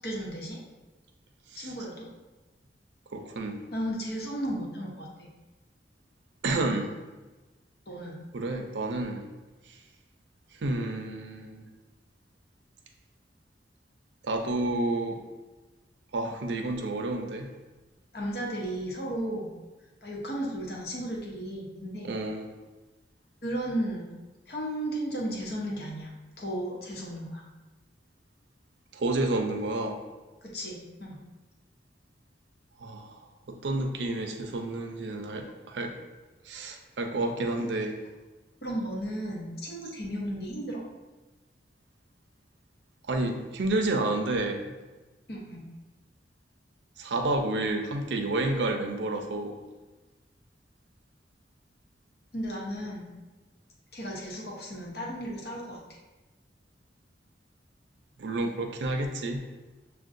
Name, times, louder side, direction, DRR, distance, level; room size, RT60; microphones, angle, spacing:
voice 1, 0.0-0.6 1.5-2.1 3.7-5.3 7.9-8.2 18.1-19.5 20.0-22.1 23.4-24.1 24.5-26.1 26.4-27.4 30.4-31.2 37.6-37.7 38.6-40.8 45.3-45.7 52.3-53.1 53.9-55.8, right 1 dB, 65° left, -3 dB, 0.9 m, -34 dB
voice 2, 3.1-3.6 6.4-6.9 8.3-9.3 9.7-9.8 10.6-11.6 14.2-15.2 16.1-17.5 22.0-22.5 28.9-30.0 32.8-33.2 33.5-36.0 36.4-37.9 43.1-44.7 47.0-49.6 58.2-59.5, right 2 dB, 85° right, 4 dB, 0.5 m, -30 dB
6.4 x 2.2 x 2.5 m, 1.2 s
head